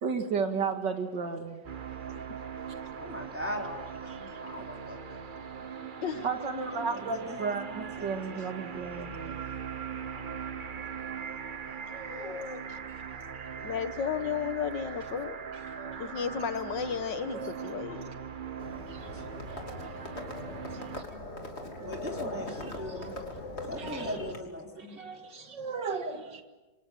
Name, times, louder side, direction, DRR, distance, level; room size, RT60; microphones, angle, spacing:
voice 1, 0.0-1.6 4.1-4.4 6.2-9.4 11.9-12.5 13.1-13.5 15.8-16.5 17.3-17.5 18.9-20.1 20.7-20.9 22.6-23.1 23.7-24.2 24.8-26.4, right 5 dB, 70° right, 2.5 m, -35 dB
sound 1, 1.6-21.0, right 7 dB, 40° right, 0.8 m, -40 dB
voice 2, 2.9-5.3 6.7-8.1 17.3-17.5 19.1-19.2 21.8-23.2 23.7-25.0, equal, 5° right, 3.7 m, -40 dB
voice 3, 12.0-12.8 13.6-15.4 16.0-18.2 19.8-19.9 22.7-24.2 24.8-25.2, left 7 dB, 70° left, 2.0 m, -35 dB
Livestock farm animals working animals, 18.6-24.4, left 1 dB, 35° left, 3.3 m, -40 dB
27.0 x 26.0 x 7.5 m
omnidirectional pair, 2.0 m